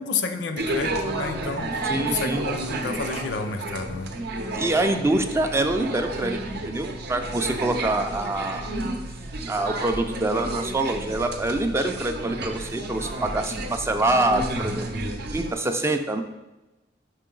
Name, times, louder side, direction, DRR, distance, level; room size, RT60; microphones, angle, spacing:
voice 1, 0.0-4.1, left 4 dB, 70° left, 7 dB, 0.5 m, -30 dB
sound 1, 0.6-15.5, right 2 dB, 60° right, 0.6 m, -31 dB
voice 2, 1.9-2.4 4.5-8.7 9.5-16.2, right 2 dB, 15° right, 6 dB, 0.3 m, -25 dB
5.7 x 4.5 x 3.8 m, 1.0 s
head